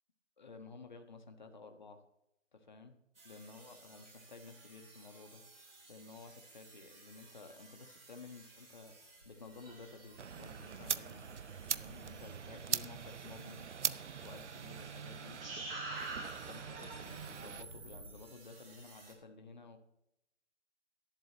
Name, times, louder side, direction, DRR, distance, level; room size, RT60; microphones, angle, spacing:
voice 1, 0.4-2.0 2.5-2.9 3.2-5.4 5.9-11.3 11.7-15.4 16.5-19.8, left 4 dB, 40° left, 6 dB, 1.4 m, -53 dB
sound 1, 3.2-19.1, right 2 dB, 50° right, 3.8 m, -52 dB
sound 2, 10.2-17.6, right 7 dB, 70° right, 0.7 m, -41 dB
14.5 x 12.0 x 3.0 m, 0.84 s
figure-of-eight pair, 170°, 37 cm